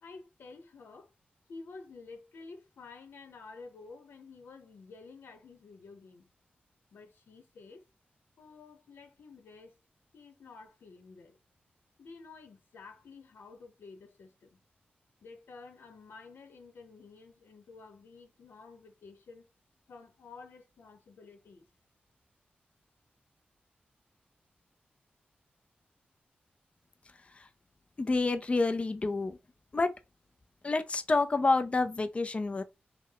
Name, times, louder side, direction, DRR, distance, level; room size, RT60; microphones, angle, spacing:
voice 1, 0.0-1.1 1.5-6.3 6.9-7.8 8.4-9.8 10.1-11.4 12.0-14.6 15.2-19.5 19.9-21.7, left 4 dB, 90° left, 0.9 m, -51 dB
voice 2, 28.0-29.4 29.7-29.9 30.6-32.6, left 3 dB, 35° left, 0.5 m, -28 dB
5.9 x 2.2 x 3.9 m
wide cardioid pair, 95°, 4 cm